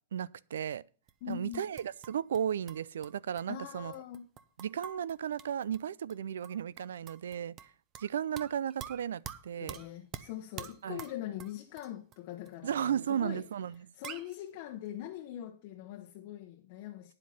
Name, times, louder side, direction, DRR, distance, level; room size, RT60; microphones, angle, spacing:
voice 1, 0.1-0.8 1.3-3.9 4.6-7.6 8.0-9.8 10.8-11.0 12.6-13.9, right 9 dB, 85° right, 0.4 m, -34 dB
sound 1, 1.1-2.4 2.7-5.8 6.1-6.2 6.4-8.1 8.4-12.2 12.5-12.6 12.8-12.9 13.4-13.5 13.7-13.8 14.0-14.4, right 9 dB, 25° right, 0.7 m, -46 dB
voice 2, 1.2-1.6 3.5-4.3 9.6-13.5 13.9-17.1, left 12 dB, 45° left, 0.9 m, -42 dB
9.9 x 7.6 x 5.5 m
supercardioid pair, 155°, 0 cm